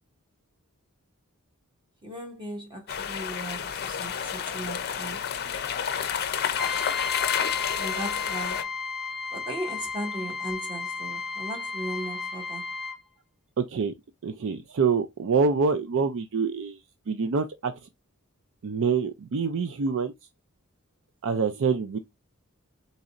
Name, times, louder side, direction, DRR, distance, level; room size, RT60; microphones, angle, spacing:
voice 1, 2.0-5.3 7.7-8.7 9.3-12.7, right 1 dB, 20° right, 1.5 m, -37 dB
sound 1, 2.9-8.6, left 8 dB, 50° left, 0.5 m, -30 dB
Trumpet, 6.6-13.0, left 5 dB, ahead, 0.8 m, -33 dB
voice 2, 13.6-13.9 14.2-16.8 17.1-17.7 18.6-20.1 21.2-22.0, right 5 dB, 60° right, 0.4 m, -26 dB
4.1 x 4.0 x 2.4 m
head